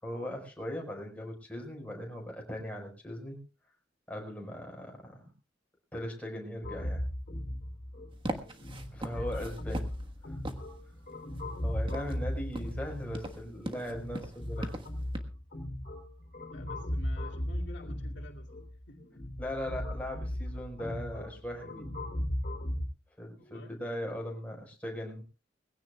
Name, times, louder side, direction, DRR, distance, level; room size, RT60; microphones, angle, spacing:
voice 1, 0.0-3.4 4.1-5.3 5.9-7.0 8.9-9.9 10.2-10.4 11.6-14.7 19.4-21.9 23.2-25.2, equal, 10° left, 0 dB, 4.7 m, -39 dB
sound 1, 6.6-22.9, left 1 dB, 45° left, 3.7 m, -37 dB
sound 2, 8.1-15.2, right 1 dB, 25° right, 1.4 m, -42 dB
voice 2, 9.1-9.5 16.5-18.5 18.9-19.1 23.4-23.8, left 1 dB, 65° left, 0 dB, 2.5 m, -50 dB
22.0 x 16.5 x 2.3 m, 0.32 s
head